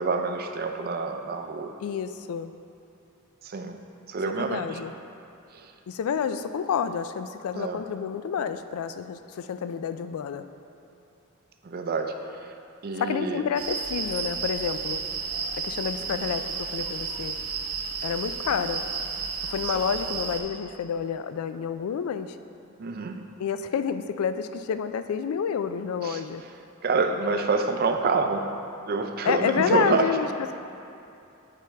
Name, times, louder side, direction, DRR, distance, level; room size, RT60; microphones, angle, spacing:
voice 1, 0.0-1.7 3.4-3.8 4.1-4.7 7.5-7.8 11.6-12.2 12.8-13.4 16.2-16.3 22.8-23.2 26.0-26.2 26.8-28.4 28.9-30.1, right 4 dB, 45° right, 5 dB, 0.4 m, -27 dB
voice 2, 1.8-2.5 4.3-4.9 5.9-10.5 12.9-15.0 15.6-17.4 18.0-18.8 19.4-22.4 23.4-26.4 29.2-30.6, left 7 dB, 80° left, 11 dB, 0.3 m, -29 dB
sound 1, 13.5-20.4, right 5 dB, 85° right, 0.7 m, -32 dB
8.2 x 5.0 x 3.4 m, 2.7 s
head